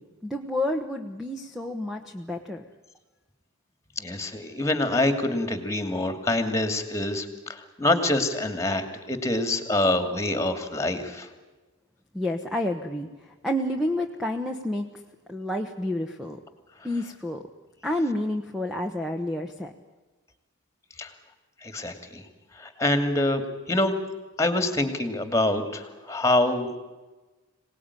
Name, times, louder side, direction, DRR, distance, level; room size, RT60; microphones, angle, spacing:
voice 1, 0.0-2.6 12.1-14.9 15.3-16.4 16.8-17.4 17.8-19.7, left 1 dB, ahead, 4 dB, 1.2 m, -29 dB
voice 2, 4.0-11.3 21.0-21.1 21.6-22.2 22.5-24.0 24.4-26.7, left 1 dB, 15° left, 9 dB, 2.6 m, -26 dB
25.5 x 19.0 x 9.9 m, 1.2 s
head